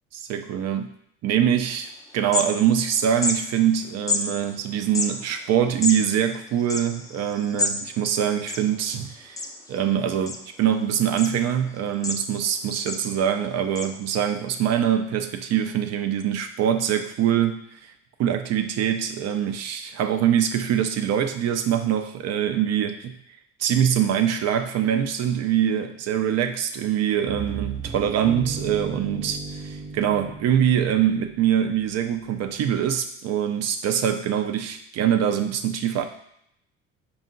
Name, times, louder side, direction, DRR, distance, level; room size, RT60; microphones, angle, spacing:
voice 1, 0.3-0.9 1.2-9.4 9.7-17.6 18.2-23.1 23.6-36.0, right 9 dB, 55° right, 7 dB, 0.5 m, -24 dB
sound 1, 1.7-1.8 2.1-2.9 3.2-3.4 4.1-4.2 4.8-7.8 8.1-8.2 8.4-9.0 9.4-9.8 10.3-10.8 11.2-11.3 11.7-12.5 12.9-13.1 13.7-13.9, left 2 dB, 10° left, 0.4 m, -28 dB
sound 2, 27.3-32.1, right 4 dB, 25° right, 0.8 m, -36 dB
4.4 x 2.4 x 3.8 m, 0.74 s
supercardioid pair, 90°, 31 cm